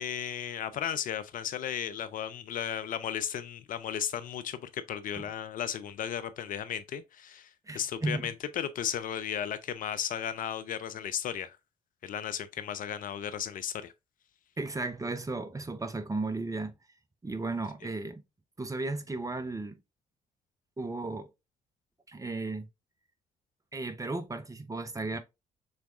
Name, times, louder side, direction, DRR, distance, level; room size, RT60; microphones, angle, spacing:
voice 1, 0.0-11.6 12.0-13.9, left 9 dB, 45° left, 0.4 m, -35 dB
voice 2, 7.7-8.3 14.6-16.7 17.2-18.2 18.6-19.8 20.8-21.3 22.1-22.7 23.7-25.2, right 3 dB, 15° right, 0.8 m, -34 dB
6.4 x 3.4 x 2.4 m
figure-of-eight pair, 45°, 19 cm